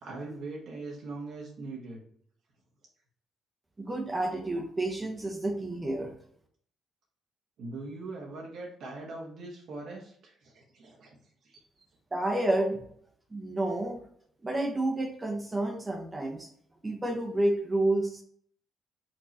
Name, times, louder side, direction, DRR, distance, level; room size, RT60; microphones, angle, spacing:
voice 1, 0.0-2.0 7.6-11.2 11.4-11.6, right 3 dB, 70° right, -2 dB, 1.3 m, -41 dB
voice 2, 3.8-6.1 12.1-12.8 13.3-14.0 14.4-16.5 16.8-18.2, right 1 dB, 20° right, 2 dB, 0.9 m, -30 dB
4.6 x 3.8 x 2.8 m, 0.63 s
cardioid pair, 90°, 0 cm